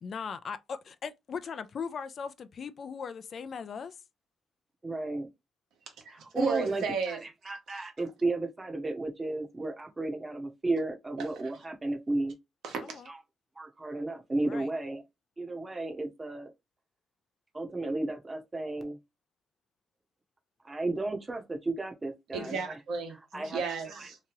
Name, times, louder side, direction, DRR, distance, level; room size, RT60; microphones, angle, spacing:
voice 1, 0.0-4.0 12.8-13.1 14.4-14.7 22.4-22.6 23.3-23.5, left 6 dB, 50° left, 0.3 m, -39 dB
voice 2, 4.8-5.3 6.1-6.8 7.4-12.3 13.1-13.2 13.6-15.0 15.4-16.5 17.5-19.0 20.6-22.7 23.3-23.6, right 2 dB, 20° right, 0.7 m, -33 dB
voice 3, 6.0-7.2 7.7-7.9 11.2-11.5 12.6-13.0 22.3-23.1 23.4-24.2, right 5 dB, 80° right, 1.0 m, -34 dB
2.8 x 2.3 x 3.0 m
cardioid pair, 90°, 0 cm